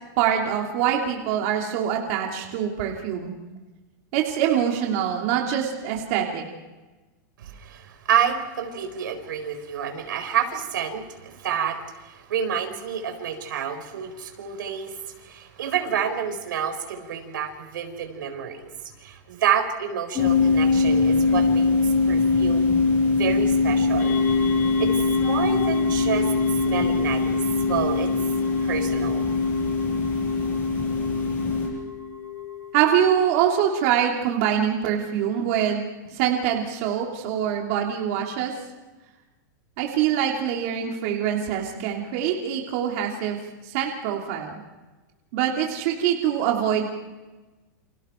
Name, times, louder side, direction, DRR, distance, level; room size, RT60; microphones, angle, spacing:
voice 1, 0.2-3.3 4.1-6.4 32.7-38.5 39.8-43.4 43.6-44.6 45.3-46.9, right 9 dB, 40° right, 0 dB, 3.1 m, -24 dB
voice 2, 7.4-18.7 19.0-21.7 22.1-22.7 23.1-24.1 24.8-24.9 25.2-26.3 26.7-27.4 27.7-28.1 28.6-29.2, right 8 dB, 80° right, 6 dB, 4.3 m, -28 dB
sound 1, 20.2-31.7, left 4 dB, 20° left, 7.0 m, -22 dB
sound 2, 24.0-33.8, left 9 dB, 60° left, 4.4 m, -36 dB
30.0 x 27.5 x 4.6 m, 1.2 s
supercardioid pair, 170°, 11 cm